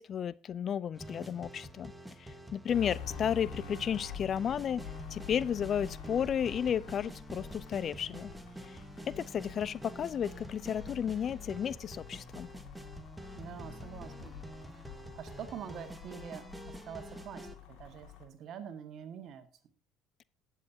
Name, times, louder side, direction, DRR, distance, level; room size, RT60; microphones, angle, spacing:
voice 1, 0.0-1.9 2.2-4.8 5.1-8.3 8.6-8.8 9.1-12.5, left 8 dB, 45° left, 0.4 m, -33 dB
sound 1, 0.9-17.6, right 1 dB, 5° right, 1.2 m, -47 dB
sound 2, 2.7-18.2, left 7 dB, 65° left, 2.1 m, -48 dB
voice 2, 13.3-14.4 14.7-19.5, right 8 dB, 55° right, 1.7 m, -46 dB
18.0 x 7.4 x 2.8 m
hypercardioid pair, 60°, 0 cm